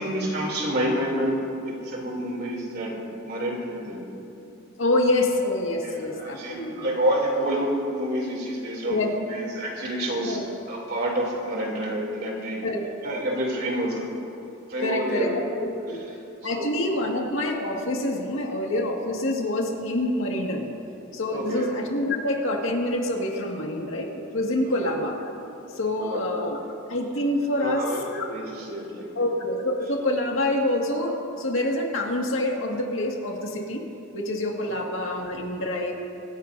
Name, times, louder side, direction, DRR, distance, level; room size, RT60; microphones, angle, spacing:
voice 1, 0.0-3.0 3.2-4.0 5.8-12.6 13.0-14.1 14.7-15.3 16.5-16.7 21.3-21.7 24.6-24.9 26.0-26.2 27.6-29.1, right 1 dB, 50° right, -2 dB, 3.1 m, -28 dB
voice 2, 4.8-6.9 8.8-9.1 10.2-10.4 12.6-13.2 14.8-16.0 16.4-20.7 21.1-25.2 25.7-26.6 26.9-27.9 28.1-28.2 29.1-33.8 34.1-35.9, left 1 dB, 70° left, 0 dB, 2.0 m, -26 dB
25.0 x 15.5 x 2.7 m, 2.7 s
head